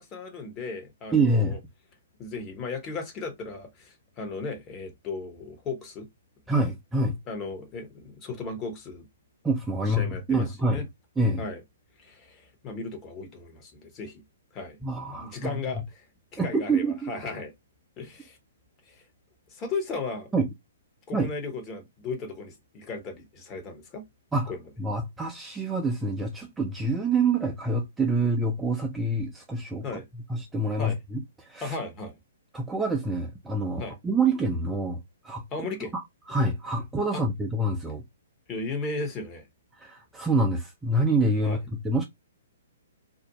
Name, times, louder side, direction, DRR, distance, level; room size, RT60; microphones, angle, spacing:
voice 1, 0.0-1.6 2.2-6.1 7.3-9.1 9.8-10.8 11.4-11.6 12.0-14.2 14.5-14.8 15.2-16.1 16.3-17.5 18.0-18.4 18.9-19.0 19.5-20.3 21.1-24.0 24.5-24.6 29.8-30.1 30.8-31.0 31.6-32.2 33.8-34.0 35.5-35.9 37.1-37.2 38.5-39.5 41.4-41.6, left 3 dB, 25° left, 0.9 m, -36 dB
voice 2, 1.1-1.6 6.5-7.2 9.4-10.9 11.2-11.4 14.8-15.5 16.4-17.1 20.3-20.5 21.1-21.3 24.3-29.9 30.3-31.8 32.5-35.0 35.2-35.4 35.9-36.0 36.3-38.0 39.8-42.0, right 2 dB, 10° right, 0.5 m, -26 dB
2.5 x 2.1 x 2.8 m
figure-of-eight pair, 120°, 0 cm